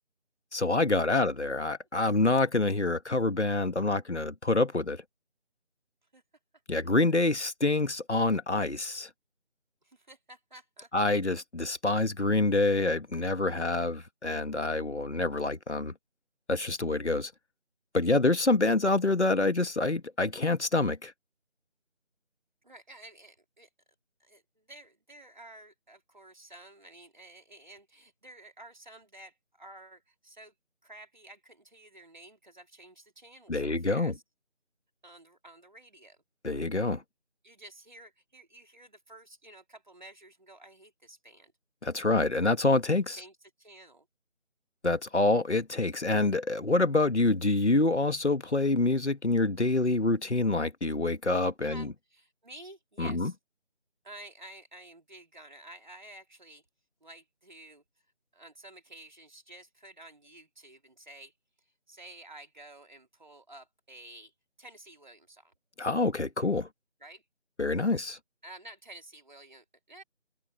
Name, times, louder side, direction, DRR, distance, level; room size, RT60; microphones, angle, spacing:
voice 1, 0.5-5.0 6.7-9.1 10.9-15.9 16.5-17.3 17.9-21.1 33.5-34.1 36.4-37.0 41.8-43.2 44.8-51.9 53.0-53.3 65.8-66.7 67.6-68.2, left 2 dB, 70° left, 2.0 m, -26 dB
voice 2, 9.8-10.9 22.6-23.7 24.2-30.5 30.8-34.2 35.0-36.2 37.4-41.5 43.1-44.1 51.6-53.4 54.0-56.6 57.0-57.8 58.3-61.3 61.9-64.3 64.6-65.5 67.0-67.2 68.4-70.0, right 1 dB, 40° right, 3.6 m, -51 dB
figure-of-eight pair, 170°, 36 cm